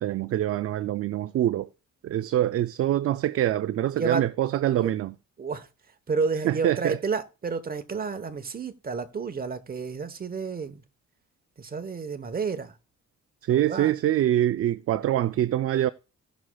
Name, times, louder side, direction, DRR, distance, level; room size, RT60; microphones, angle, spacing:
voice 1, 0.0-1.7 2.0-5.1 6.4-7.0 13.4-15.9, right 12 dB, 50° right, 0.4 m, -25 dB
voice 2, 6.1-10.8 11.6-12.8 13.5-13.9, right 5 dB, 30° right, 1.0 m, -30 dB
17.5 x 6.3 x 2.3 m
cardioid pair, 90°, 30 cm